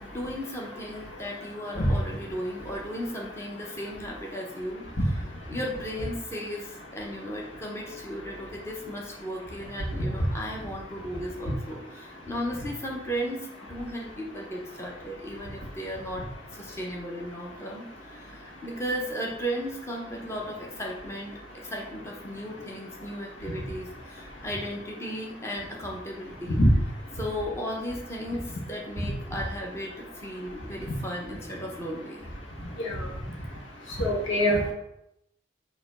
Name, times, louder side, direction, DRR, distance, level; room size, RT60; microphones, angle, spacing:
voice 1, 0.0-4.8 5.5-26.6 27.2-32.2, equal, 15° left, -2 dB, 0.9 m, -35 dB
voice 2, 32.8-33.1 34.0-34.7, equal, 90° left, 0 dB, 1.4 m, -23 dB
6.8 x 3.0 x 5.3 m, 0.84 s
head